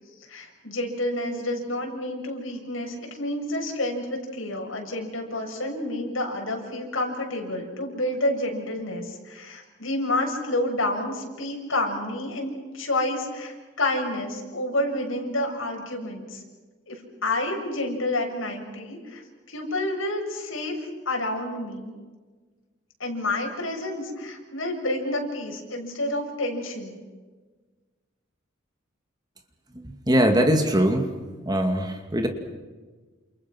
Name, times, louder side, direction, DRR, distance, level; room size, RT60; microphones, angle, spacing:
voice 1, 0.3-16.4 16.9-19.2 19.5-20.7 21.1-21.9 23.0-27.0, left 1 dB, 80° left, 2 dB, 7.1 m, -29 dB
voice 2, 29.8-31.1 31.4-32.3, right 1 dB, 20° right, 5 dB, 2.4 m, -22 dB
29.5 x 29.0 x 6.2 m, 1.4 s
head